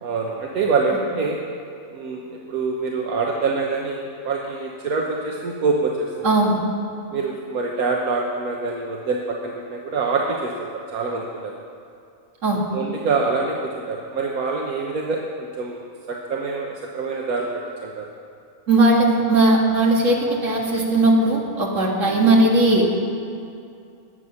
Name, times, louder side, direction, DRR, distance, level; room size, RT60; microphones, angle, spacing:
voice 1, 0.0-1.4 1.9-6.3 7.1-11.5 12.7-15.8 16.1-17.5 17.8-18.0 22.1-22.3, right 4 dB, 80° right, 0 dB, 1.5 m, -25 dB
voice 2, 6.2-6.6 12.4-12.6 18.7-22.8, right 2 dB, 60° right, -2 dB, 2.3 m, -18 dB
21.0 x 7.9 x 5.7 m, 2.5 s
omnidirectional pair, 1.5 m